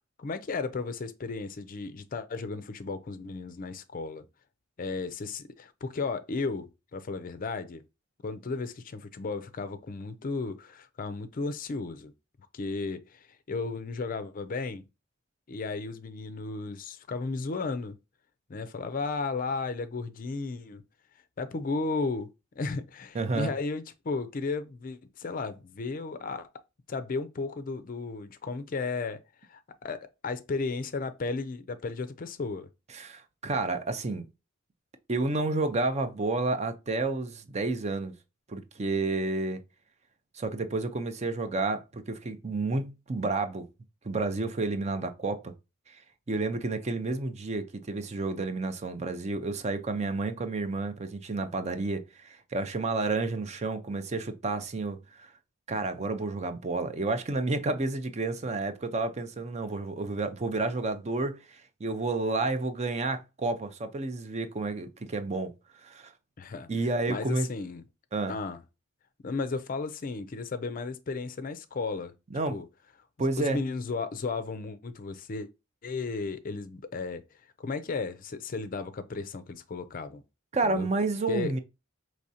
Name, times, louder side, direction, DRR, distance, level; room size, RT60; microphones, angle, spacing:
voice 1, 0.2-4.3 4.8-7.8 8.2-12.1 12.5-14.8 15.5-18.0 18.5-20.8 21.4-22.3 22.6-26.5 26.9-29.2 29.5-32.7 66.4-66.7 67.1-67.8 68.3-68.6 69.2-72.1 72.5-72.7 73.4-75.5 75.8-77.2 77.6-80.2 80.6-80.9 81.3-81.5, left 4 dB, 45° left, 0.4 m, -34 dB
voice 2, 23.1-23.5 32.9-34.3 35.1-38.1 38.5-39.6 40.3-43.7 44.0-45.5 46.3-55.3 55.7-65.5 65.8-66.1 66.7-67.5 68.1-68.3 72.3-72.6 73.2-73.6 80.5-81.6, right 3 dB, 35° right, 0.5 m, -30 dB
4.9 x 3.1 x 2.7 m
head